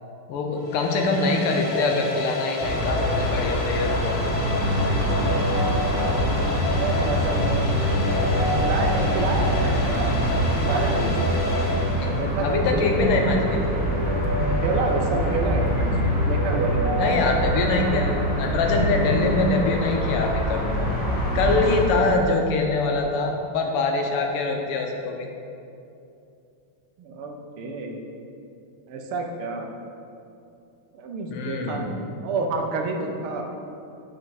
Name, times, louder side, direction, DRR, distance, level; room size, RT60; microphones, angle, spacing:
voice 1, 0.3-4.2 12.0-12.1 12.4-13.7 17.0-20.9 21.3-25.3 31.3-31.9, left 3 dB, 85° left, 2 dB, 1.7 m, -24 dB
sound 1, 0.6-12.5, left 3 dB, 55° left, 0.8 m, -31 dB
sound 2, 2.6-21.8, equal, 5° left, 1.0 m, -26 dB
sound 3, 4.4-19.3, equal, 55° right, 0.6 m, -28 dB
voice 2, 6.2-7.8 8.6-11.3 12.0-12.8 14.6-16.9 21.7-22.1 27.0-28.0 28.9-29.7 30.9-31.9 32.2-33.4, right 3 dB, 80° right, 2 dB, 1.7 m, -29 dB
8.9 x 4.9 x 4.1 m, 2.7 s
omnidirectional pair, 2.4 m